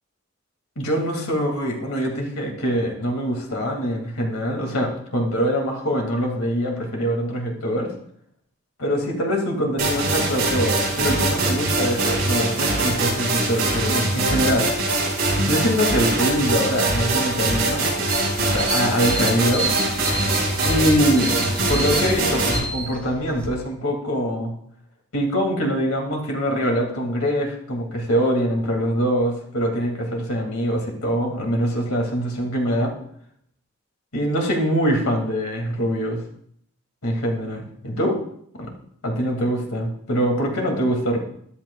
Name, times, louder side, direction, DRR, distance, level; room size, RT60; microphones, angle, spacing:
voice 1, 0.8-7.9 8.8-14.7 15.5-17.9 18.4-19.7 20.6-24.5 25.1-32.9 34.1-36.2 37.0-38.2 38.6-38.7 39.0-41.2, equal, 90° left, 1 dB, 2.2 m, -23 dB
sound 1, 9.8-22.6, right 2 dB, 45° right, 4.7 m, -22 dB
sound 2, 18.1-23.5, right 1 dB, 5° left, 0.9 m, -31 dB
14.0 x 10.5 x 2.3 m, 0.66 s
head